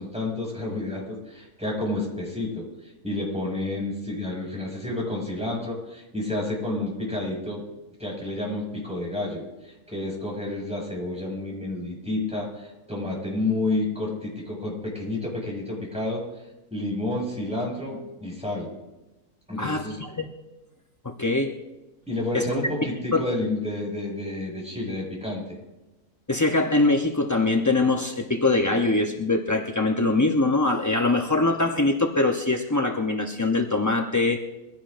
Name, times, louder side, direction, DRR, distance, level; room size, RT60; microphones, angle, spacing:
voice 1, 0.0-7.6 8.0-16.2 16.7-18.7 19.5-20.0 22.1-25.4, left 2 dB, 5° right, -4 dB, 5.9 m, -30 dB
voice 2, 19.6-20.3 21.0-21.5 22.3-22.4 23.1-23.2 26.3-34.4, left 2 dB, 25° left, 2 dB, 0.3 m, -23 dB
23.0 x 16.5 x 2.5 m, 1.0 s
omnidirectional pair, 1.6 m